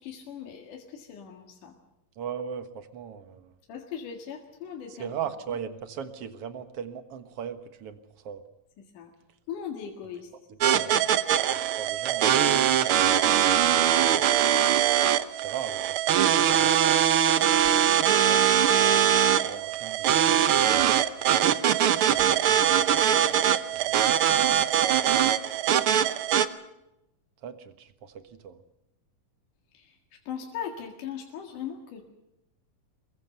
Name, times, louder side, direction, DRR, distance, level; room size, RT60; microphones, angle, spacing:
voice 1, 0.0-1.7 3.7-5.2 8.9-9.1 9.5-10.3 29.7-29.9 30.3-32.1, left 8 dB, 75° left, 2 dB, 3.4 m, -39 dB
voice 2, 2.2-3.5 4.9-8.0 8.2-8.4 10.5-11.0 11.5-14.3 15.4-16.8 18.2-20.5 21.9-22.6 22.9-23.3 23.6-24.2 27.4-28.6, right 8 dB, 55° right, 10 dB, 2.1 m, -39 dB
sound 1, 10.6-26.5, right 10 dB, 75° right, 1.2 m, -22 dB
24.5 x 21.0 x 6.9 m, 0.89 s
omnidirectional pair, 3.7 m